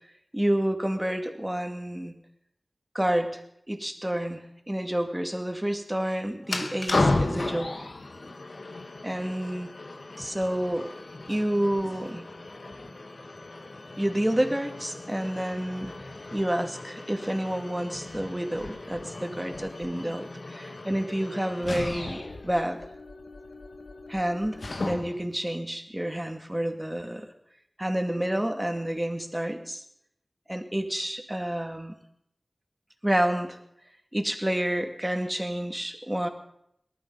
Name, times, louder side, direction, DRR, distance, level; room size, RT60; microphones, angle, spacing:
voice 1, 0.3-2.2 2.9-7.8 9.0-9.7 10.2-10.9 11.3-12.3 14.0-15.9 16.3-22.8 24.1-27.3 27.8-29.8 30.5-31.9 33.0-33.6 34.1-36.3, right 1 dB, 15° right, 5 dB, 2.2 m, -29 dB
sound 1, 6.4-25.3, left 2 dB, 80° left, 1.2 m, -35 dB
18.5 x 12.5 x 5.5 m, 0.74 s
wide cardioid pair, 40°, 0 cm